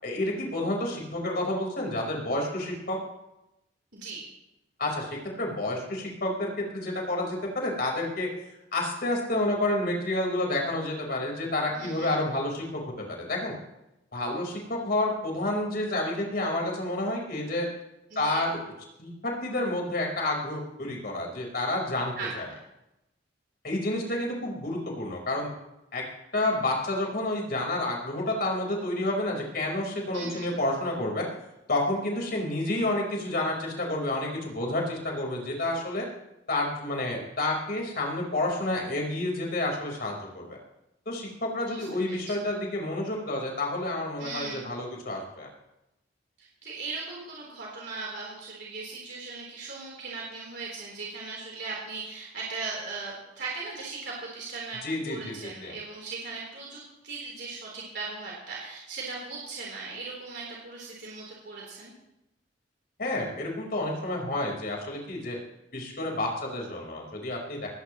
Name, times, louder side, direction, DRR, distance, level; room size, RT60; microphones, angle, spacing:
voice 1, 0.0-3.0 4.8-8.3 8.7-12.8 13.1-13.5 14.1-17.7 18.1-18.7 19.0-22.5 23.6-25.5 25.9-26.0 26.3-31.3 31.7-36.0 36.5-40.4 41.1-45.5 54.8-55.7 63.0-65.4 65.7-67.7, left 1 dB, 55° left, -1 dB, 4.4 m, -29 dB
voice 2, 3.9-4.2 11.7-12.2 18.1-18.4 22.2-22.6 30.1-30.5 41.6-42.2 44.2-44.7 46.4-61.9, right 4 dB, 65° right, -4 dB, 3.8 m, -38 dB
19.5 x 16.0 x 3.1 m, 0.90 s
head